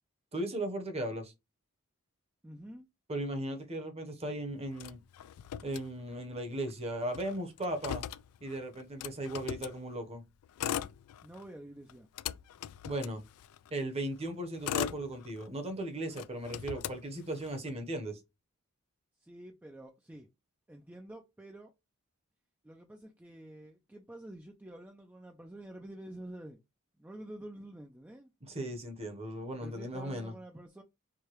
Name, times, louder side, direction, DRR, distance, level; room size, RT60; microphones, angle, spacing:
voice 1, 0.3-1.3 3.1-5.0 5.6-8.0 8.4-10.2 12.8-13.2 13.7-18.2 28.5-30.3, right 1 dB, 30° right, 0.8 m, -37 dB
voice 2, 2.4-2.9 11.2-12.1 19.2-20.3 20.7-21.7 22.6-26.6 27.0-28.3 29.6-30.8, right 1 dB, 10° right, 0.3 m, -48 dB
Motor vehicle (road), 4.8-6.4 6.7-6.8 7.0-9.8 10.4-11.5 11.9-13.7 14.3-15.7 16.1-17.7, left 10 dB, 80° left, 0.3 m, -39 dB
4.7 x 2.2 x 2.9 m
head